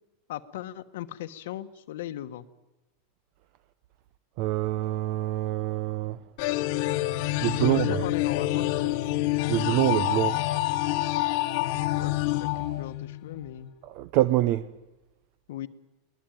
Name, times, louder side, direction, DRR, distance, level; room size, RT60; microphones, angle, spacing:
voice 1, 0.3-2.5 7.6-9.0 11.6-13.7 15.5-15.7, left 12 dB, 75° left, 1.2 m, -38 dB
voice 2, 4.4-6.2 7.4-8.0 9.5-10.4 13.9-14.6, right 15 dB, 45° right, 0.7 m, -25 dB
sound 1, 6.4-13.4, left 16 dB, 50° left, 1.2 m, -27 dB
22.5 x 19.0 x 9.1 m
supercardioid pair, 165°, 0 cm